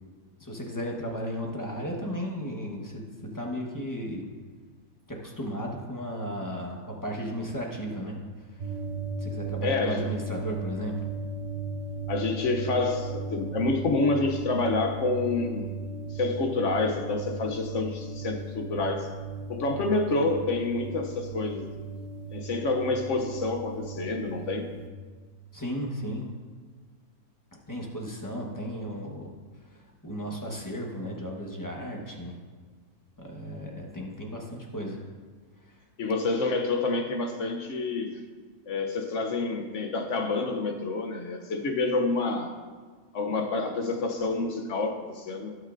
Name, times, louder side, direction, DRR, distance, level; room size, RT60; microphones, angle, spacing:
voice 1, 0.4-3.0 3.3-4.2 5.1-8.8 9.2-11.0 25.5-26.3 27.7-29.3 29.6-32.4 33.2-35.0 35.7-35.8, equal, 15° left, -1 dB, 1.1 m, -35 dB
sound 1, 8.6-24.9, right 3 dB, 35° right, 0.6 m, -36 dB
voice 2, 9.6-10.1 12.1-15.7 16.1-19.2 19.5-21.7 22.3-24.7 36.0-38.2 38.7-42.5 43.1-45.6, left 3 dB, 60° left, 5 dB, 1.0 m, -28 dB
18.0 x 6.3 x 2.6 m, 1.5 s
omnidirectional pair, 1.6 m